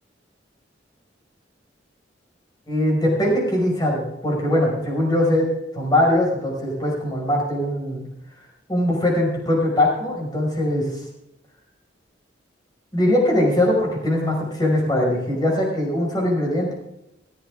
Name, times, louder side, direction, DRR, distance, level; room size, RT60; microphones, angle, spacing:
voice 1, 2.7-5.5 5.7-8.0 8.7-10.9 12.9-16.7, left 1 dB, 25° left, -1 dB, 5.5 m, -21 dB
17.5 x 14.0 x 3.6 m, 0.83 s
head